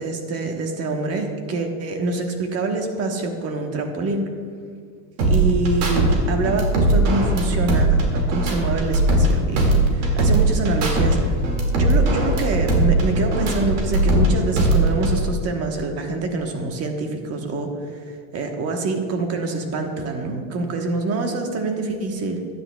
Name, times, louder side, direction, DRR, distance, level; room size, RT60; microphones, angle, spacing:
voice 1, 0.0-4.3 5.3-11.4 11.8-22.4, right 3 dB, 35° right, 4 dB, 1.2 m, -25 dB
sound 1, 5.2-6.1 6.4-9.3 9.6-11.1 11.4-14.3 14.6-15.2, right 2 dB, 80° right, 2.3 m, -19 dB
15.0 x 9.9 x 2.3 m, 2.1 s
supercardioid pair, 150°, 43 cm